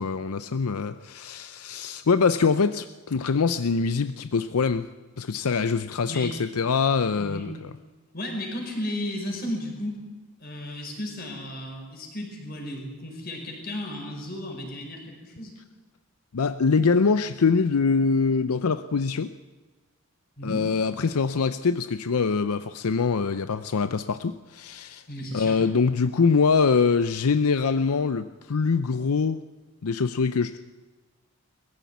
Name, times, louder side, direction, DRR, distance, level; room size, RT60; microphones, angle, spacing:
voice 1, 0.0-4.9 5.2-7.7 16.3-19.3 20.4-25.0 25.3-29.4 29.8-30.6, left 5 dB, 85° left, 12 dB, 0.6 m, -24 dB
voice 2, 7.2-7.5 8.1-10.0 10.4-15.5 20.4-20.7 25.1-25.6, left 1 dB, 40° left, 1 dB, 5.3 m, -34 dB
21.0 x 15.0 x 9.4 m, 1.3 s
head